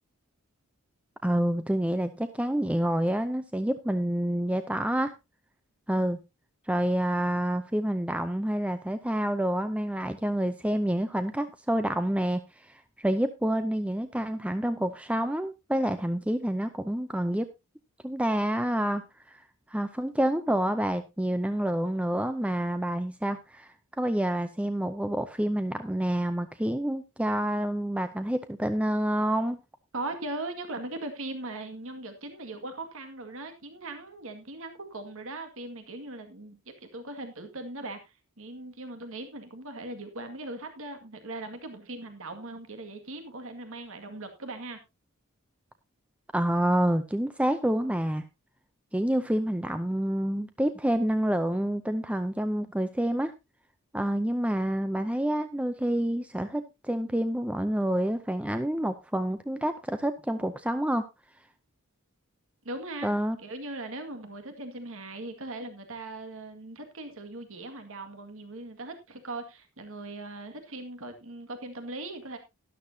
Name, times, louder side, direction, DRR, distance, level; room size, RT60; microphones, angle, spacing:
voice 1, 1.2-5.1 5.9-6.2 6.7-17.5 18.0-19.0 19.3-19.4 19.7-29.6 46.3-48.3 48.9-53.3 53.9-61.1 63.0-63.4, right 1 dB, 5° right, 10 dB, 0.5 m, -28 dB
voice 2, 29.9-44.8 62.6-63.1 63.4-72.4, right 2 dB, 65° right, 7 dB, 2.0 m, -39 dB
12.5 x 11.5 x 2.8 m, 0.23 s
head